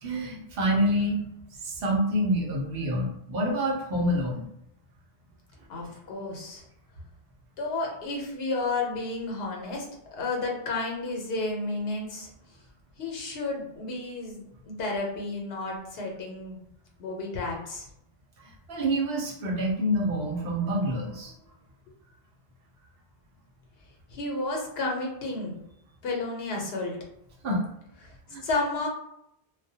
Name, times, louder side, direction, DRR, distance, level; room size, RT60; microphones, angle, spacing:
voice 1, 0.0-1.2 1.6-4.5 5.8-5.9 18.4-21.3 27.4-27.7 28.3-28.4, equal, 70° right, -1 dB, 0.8 m, -27 dB
voice 2, 5.7-6.6 7.6-9.9 10.1-12.3 13.0-16.6 17.0-17.9 24.1-25.6 26.0-27.0 28.0-28.1 28.4-28.9, left 3 dB, 75° left, 0 dB, 0.9 m, -32 dB
2.3 x 2.1 x 2.6 m, 0.77 s
omnidirectional pair, 1.1 m